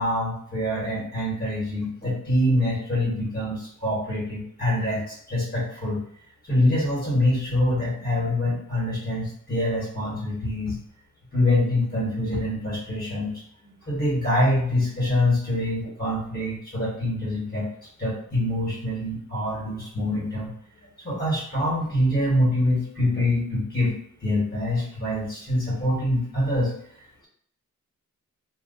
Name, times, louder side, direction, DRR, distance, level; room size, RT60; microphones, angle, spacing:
voice 1, 0.0-6.0 6.5-10.7 11.3-13.4 13.9-17.7 18.0-20.5 21.0-23.9 24.2-26.7, left 1 dB, 30° left, -5 dB, 1.2 m, -25 dB
2.9 x 2.3 x 2.5 m, 0.66 s
wide cardioid pair, 145°, 30 cm